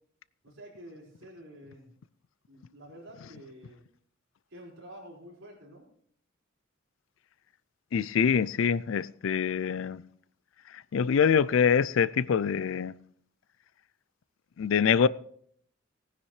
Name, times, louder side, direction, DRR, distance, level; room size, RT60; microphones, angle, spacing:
voice 1, 0.4-1.9 2.5-3.8 4.5-5.9, equal, 60° right, 5.1 m, -49 dB
voice 2, 7.9-10.0 10.7-12.9 14.6-15.1, left 7 dB, 70° left, 0.4 m, -25 dB
18.5 x 10.0 x 3.2 m
head